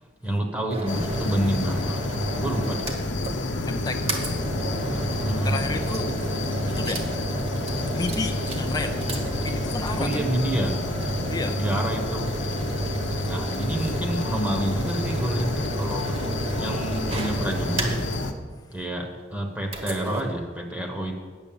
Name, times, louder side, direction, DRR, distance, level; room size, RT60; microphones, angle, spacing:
voice 1, 0.2-2.1 2.4-2.9 5.2-5.5 10.0-10.8 11.6-12.5 13.3-16.3 16.6-18.1 18.7-21.2, right 1 dB, 10° right, 1 dB, 1.2 m, -28 dB
sound 1, 0.7-3.4 3.7-3.8 4.1-18.2 19.7-20.2, right 2 dB, 30° right, 1.4 m, -32 dB
sound 2, 0.9-18.3, left 2 dB, 65° left, 0.9 m, -29 dB
voice 2, 3.6-4.5 5.4-6.3 6.7-7.1 7.9-9.0 9.3-10.2 11.3-11.6 13.0-13.3, left 3 dB, 20° left, 5 dB, 0.5 m, -32 dB
8.9 x 6.7 x 8.7 m, 1.5 s
head